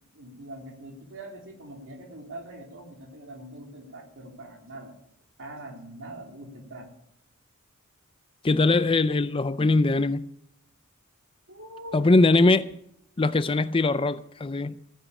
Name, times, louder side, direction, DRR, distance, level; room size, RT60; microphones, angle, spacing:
voice 1, 0.1-4.9 5.4-6.9 8.5-8.8 11.5-12.6, right 1 dB, 60° right, 3.4 m, -43 dB
voice 2, 8.4-10.3 11.9-12.7 13.2-14.8, left 3 dB, 25° left, 0.5 m, -21 dB
15.5 x 10.0 x 7.1 m
head